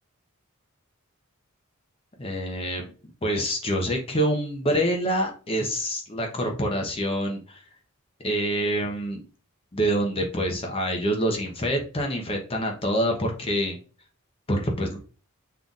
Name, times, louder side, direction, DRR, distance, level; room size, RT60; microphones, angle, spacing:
voice 1, 2.2-2.9 3.2-7.6 8.2-9.2 9.7-13.8 14.5-15.0, equal, 25° left, 2 dB, 0.8 m, -26 dB
5.6 x 3.9 x 2.4 m, 0.37 s
head